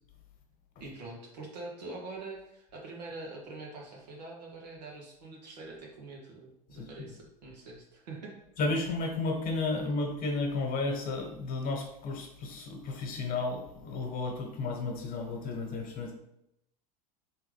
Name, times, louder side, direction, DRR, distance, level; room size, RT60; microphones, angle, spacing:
voice 1, 0.8-8.4, right 2 dB, 90° right, -1 dB, 1.3 m, -44 dB
voice 2, 8.6-16.1, left 3 dB, 45° left, 2 dB, 1.1 m, -33 dB
3.6 x 3.2 x 3.3 m, 0.80 s
hypercardioid pair, 100°, 20 cm